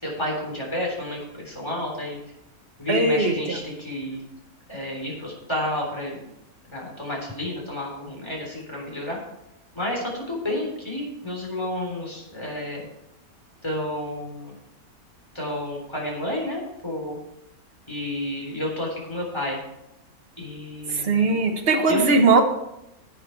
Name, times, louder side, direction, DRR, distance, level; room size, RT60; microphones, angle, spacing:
voice 1, 0.0-2.2 2.8-4.2 4.7-6.3 6.7-9.2 9.7-12.8 13.6-14.5 15.3-17.2 17.9-19.6 20.4-21.4 21.9-22.0, left 1 dB, 15° left, -2 dB, 3.7 m, -30 dB
voice 2, 2.9-3.3 21.0-22.4, right 3 dB, 45° right, 4 dB, 1.4 m, -19 dB
11.5 x 8.3 x 4.6 m, 0.85 s
omnidirectional pair, 1.6 m